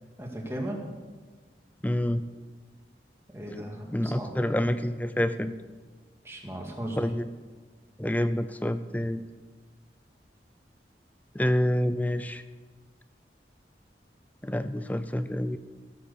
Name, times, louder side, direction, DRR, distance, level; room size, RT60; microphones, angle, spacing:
voice 1, 0.2-0.8 3.3-4.4 6.2-7.1, right 1 dB, 15° right, 0 dB, 2.0 m, -36 dB
voice 2, 1.8-2.2 3.9-5.5 7.0-7.3 8.0-9.3 11.3-12.4 14.4-15.6, left 1 dB, 10° left, 11 dB, 0.5 m, -27 dB
16.0 x 7.7 x 6.9 m, 1.4 s
head